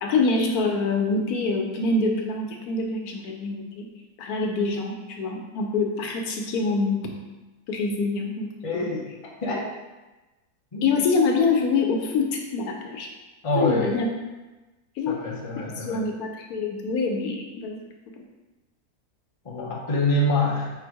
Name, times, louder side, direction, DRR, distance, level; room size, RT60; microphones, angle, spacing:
voice 1, 0.0-3.9 4.2-7.0 7.7-8.9 10.8-13.1 13.6-14.1 15.0-15.2 15.6-17.8, left 3 dB, 75° left, 2 dB, 1.1 m, -25 dB
voice 2, 8.6-9.0 9.4-9.7 10.7-10.9 13.4-13.9 15.1-16.0 19.4-20.7, left 2 dB, 30° left, -3 dB, 0.6 m, -25 dB
4.5 x 2.6 x 4.6 m, 1.1 s
omnidirectional pair, 1.6 m